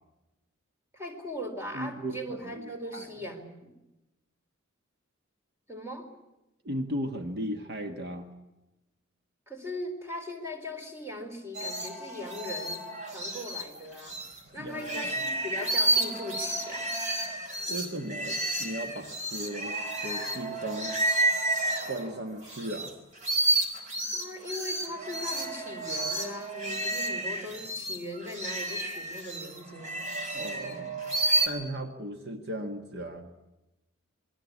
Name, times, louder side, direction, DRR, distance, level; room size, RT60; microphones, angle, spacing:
voice 1, 0.9-3.7 5.7-6.1 9.5-14.2 14.5-16.9 24.1-30.1, left 1 dB, 15° right, 4 dB, 4.0 m, -39 dB
voice 2, 1.7-3.1 6.6-8.3 14.6-15.1 17.6-21.0 21.9-22.9 30.3-31.1 31.4-33.3, right 1 dB, 55° right, 5 dB, 1.8 m, -36 dB
sound 1, 11.5-14.4 14.7-22.9 23.2-31.5, right 1 dB, 35° right, 4.0 m, -31 dB
27.0 x 21.5 x 8.6 m, 0.96 s
head